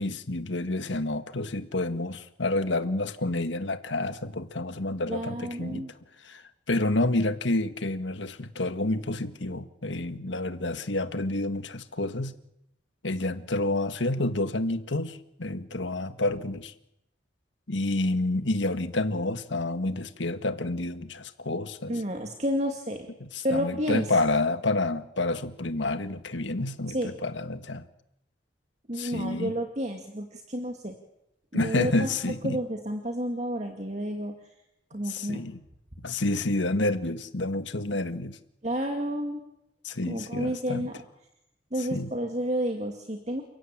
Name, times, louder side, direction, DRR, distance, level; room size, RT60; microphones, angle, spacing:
voice 1, 0.0-5.8 6.2-6.4 6.7-12.3 13.0-16.7 17.7-21.9 23.3-27.9 28.9-29.5 31.5-32.6 35.1-35.6 36.0-38.4 39.8-40.9 41.9-42.1, left 2 dB, 80° left, 10 dB, 1.7 m, -29 dB
voice 2, 5.1-5.9 21.9-23.1 23.4-24.1 26.9-27.1 28.9-30.9 31.5-32.1 32.4-34.3 34.9-35.4 38.6-39.4 40.1-41.0 41.7-43.4, equal, 35° right, 4 dB, 2.2 m, -30 dB
30.0 x 16.0 x 8.9 m, 0.83 s
head